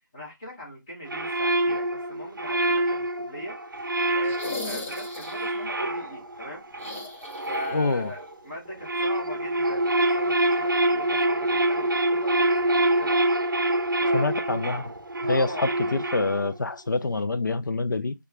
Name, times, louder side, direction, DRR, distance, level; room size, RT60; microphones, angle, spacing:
voice 1, 0.1-3.6 4.1-6.6 7.5-13.2 14.0-14.4 15.2-15.7, equal, 15° left, 1.0 m, -39 dB
sound 1, 1.1-8.3 8.7-16.6, right 1 dB, 85° right, 0.5 m, -26 dB
sound 2, 4.2-5.6 6.7-7.9 8.2-8.3 9.9-10.0, left 3 dB, 40° left, 0.9 m, -37 dB
voice 2, 7.7-8.1 14.1-14.9 15.2-18.1, left 3 dB, 70° left, 0.4 m, -26 dB
2.9 x 2.3 x 3.3 m
figure-of-eight pair, 170°, 11 cm